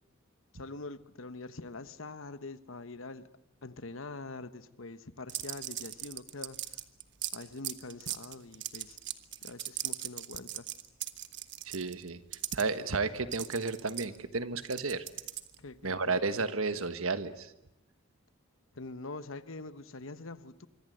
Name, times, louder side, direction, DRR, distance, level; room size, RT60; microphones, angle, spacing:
voice 1, 0.5-3.3 3.6-6.8 7.3-9.0 9.4-10.7 15.6-16.2 18.7-20.7, left 3 dB, 65° left, 1.1 m, -44 dB
sound 1, 5.3-12.6 13.3-15.7, right 13 dB, 55° right, 1.3 m, -39 dB
voice 2, 11.6-12.2 12.5-15.0 15.8-17.5, right 4 dB, 75° right, 1.4 m, -32 dB
25.5 x 24.5 x 7.9 m
head